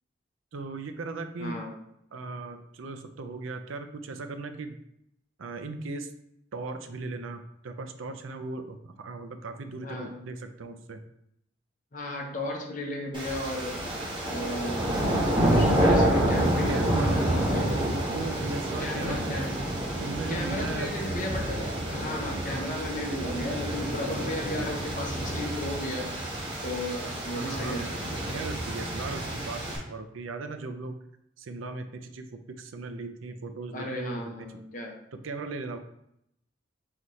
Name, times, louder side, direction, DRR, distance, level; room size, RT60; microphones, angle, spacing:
voice 1, 0.5-1.7 2.1-4.8 5.4-6.1 6.5-11.0 15.4-17.2 18.1-19.4 20.0-20.9 22.5-22.7 26.9-31.0 31.4-34.3 35.1-35.8, right 3 dB, 80° right, 8 dB, 0.5 m, -37 dB
voice 2, 1.4-1.7 9.8-10.1 11.9-13.8 14.3-14.9 15.4-16.8 17.1-17.8 18.8-19.6 20.3-26.1 26.6-27.9 33.7-35.0, left 1 dB, 40° left, 0 dB, 0.8 m, -35 dB
sound 1, 13.1-29.8, right 1 dB, 25° right, 1.0 m, -28 dB
4.0 x 4.0 x 3.1 m, 0.77 s
head